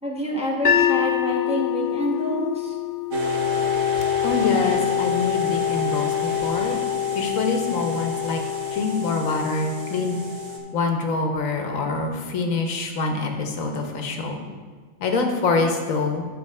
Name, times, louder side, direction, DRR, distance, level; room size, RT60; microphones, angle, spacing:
voice 1, 0.0-2.8, equal, 5° right, -3 dB, 1.1 m, -27 dB
sound 1, 0.6-6.8, left 10 dB, 55° left, 0.7 m, -27 dB
sound 2, 3.1-10.6, left 7 dB, 70° right, 1.4 m, -26 dB
voice 2, 4.2-6.8 7.1-8.4 8.7-10.2 10.7-14.4 15.0-16.3, left 3 dB, 85° left, 4 dB, 1.3 m, -25 dB
9.6 x 4.3 x 5.4 m, 1.5 s
omnidirectional pair, 1.3 m